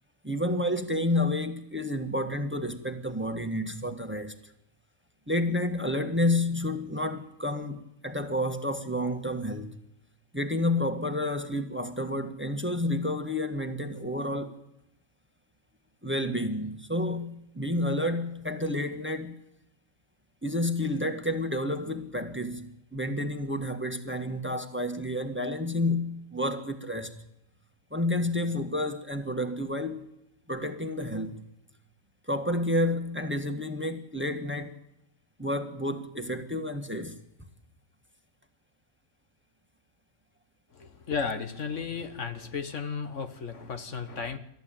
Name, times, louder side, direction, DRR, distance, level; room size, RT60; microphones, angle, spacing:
voice 1, 0.2-4.4 5.3-9.8 10.3-14.6 16.0-19.3 20.4-27.2 27.9-30.1 30.5-31.5 32.3-34.8 35.4-37.2, left 1 dB, 10° right, 1.6 m, -30 dB
voice 2, 40.7-44.4, left 5 dB, 60° left, 1.6 m, -34 dB
28.0 x 14.0 x 9.1 m
omnidirectional pair, 1.4 m